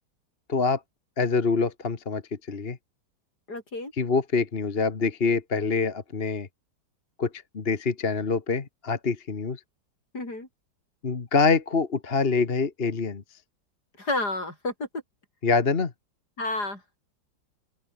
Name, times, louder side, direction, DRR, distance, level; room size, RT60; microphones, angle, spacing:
voice 1, 1.2-2.2 2.5-2.8 4.0-6.5 7.2-7.3 7.5-9.6 11.0-13.2 15.4-15.9, left 4 dB, 35° left, 1.6 m, -25 dB
voice 2, 3.5-3.9 10.1-10.5 14.0-14.9 16.4-16.8, left 2 dB, 65° left, 7.4 m, -30 dB
open air
omnidirectional pair, 1.9 m